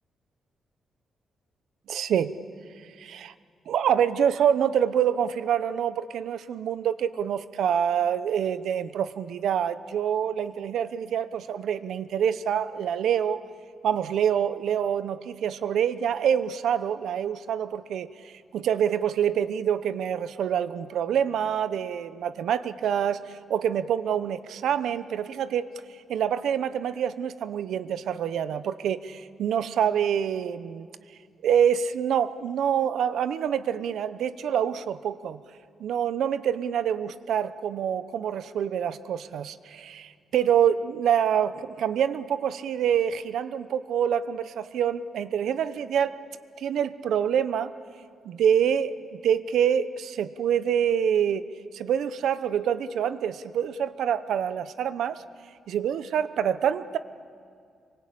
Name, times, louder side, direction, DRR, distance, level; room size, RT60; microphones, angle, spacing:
voice 1, 1.9-2.4 3.0-3.3 3.7-13.4 13.8-25.7 26.1-30.9 31.4-35.4 35.8-46.2 46.6-47.7 48.2-51.5 51.7-55.2 55.7-57.0, right 8 dB, 80° right, 13 dB, 0.9 m, -26 dB
27.0 x 23.5 x 8.6 m, 2.2 s
wide cardioid pair, 150°, 0 cm